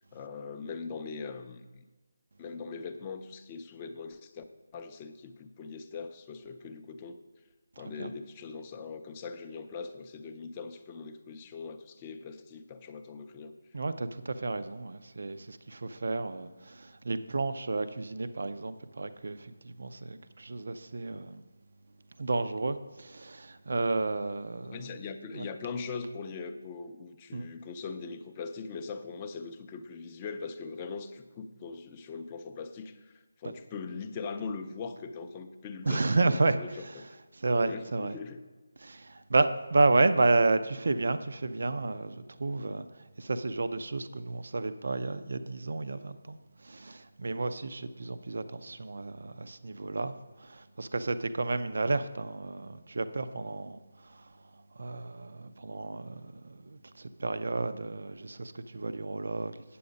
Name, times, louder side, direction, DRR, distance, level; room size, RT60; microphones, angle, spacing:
voice 1, 0.1-1.8 2.4-4.4 4.7-7.2 7.8-13.6 24.6-37.1 37.6-38.4, left 4 dB, 20° left, 0.5 m, -41 dB
voice 2, 13.7-21.4 22.2-24.8 25.3-25.5 27.3-27.5 35.9-36.6 37.4-38.2 38.8-42.8 43.2-46.4 46.6-50.1 50.4-53.8 54.8-59.5, right 3 dB, 65° right, 0.5 m, -31 dB
8.5 x 7.6 x 5.2 m
figure-of-eight pair, 170°, 0 cm